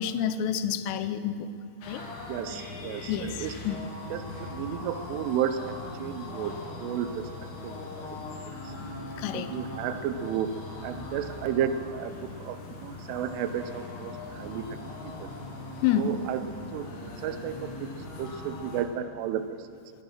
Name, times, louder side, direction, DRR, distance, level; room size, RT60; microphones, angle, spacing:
voice 1, 0.0-1.5 1.9-2.0 3.1-3.3 3.7-3.8 9.2-9.5 15.8-16.2, left 9 dB, 85° left, 12 dB, 3.3 m, -28 dB
sound 1, 1.8-18.8, left 3 dB, 65° left, 3.6 m, -40 dB
voice 2, 2.0-3.5 4.1-6.5 6.8-7.3 7.6-8.1 9.3-10.5 10.8-12.1 12.4-12.6 12.8-14.6 15.2-15.3 16.0-16.4 16.7-16.9 17.2-17.9 18.2-19.4, right 9 dB, 85° right, 10 dB, 3.0 m, -32 dB
15.5 x 10.5 x 6.4 m, 2.3 s
omnidirectional pair, 5.8 m